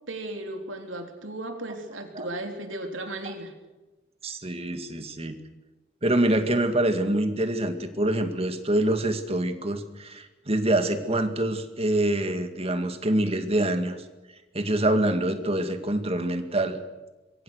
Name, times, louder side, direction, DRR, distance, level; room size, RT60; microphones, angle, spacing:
voice 1, 0.1-3.5, right 1 dB, 80° right, 4 dB, 3.5 m, -35 dB
voice 2, 4.2-5.4 6.0-14.0 14.5-16.8, right 1 dB, 30° right, 7 dB, 2.1 m, -25 dB
26.5 x 23.0 x 6.6 m, 1.1 s
head